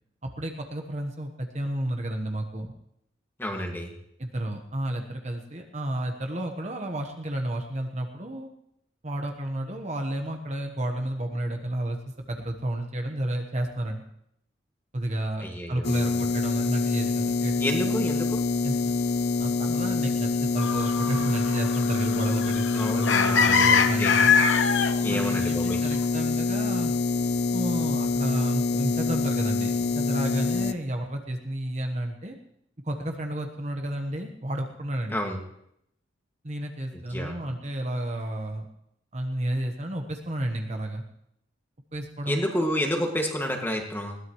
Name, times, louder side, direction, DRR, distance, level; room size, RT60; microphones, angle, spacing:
voice 1, 0.2-2.7 4.2-8.5 9.0-12.0 12.3-14.0 14.9-18.1 18.6-18.8 19.4-24.3 25.1-26.9 27.5-32.4 32.8-35.2 36.4-38.6 39.1-41.0 41.9-42.7, right 1 dB, 35° right, 3 dB, 1.2 m, -31 dB
voice 2, 3.4-3.9 15.4-16.3 17.6-18.4 22.7-24.1 25.0-25.8 35.1-35.4 37.1-37.4 42.3-44.2, equal, 10° left, 1 dB, 2.0 m, -30 dB
sound 1, 15.8-30.7, left 4 dB, 55° left, 0.7 m, -26 dB
sound 2, 20.6-25.0 25.7-25.8, left 6 dB, 75° left, 1.0 m, -24 dB
21.0 x 16.5 x 3.2 m, 0.75 s
head